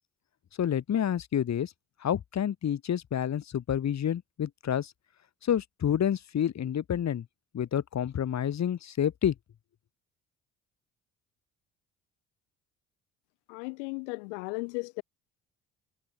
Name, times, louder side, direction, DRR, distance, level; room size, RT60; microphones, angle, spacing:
voice 1, 0.6-1.7 2.0-4.9 5.4-7.2 7.5-9.3, left 9 dB, 50° left, 2.4 m, -29 dB
voice 2, 13.5-15.0, left 35 dB, 85° left, 0.9 m, -36 dB
hypercardioid pair, 60°, 34 cm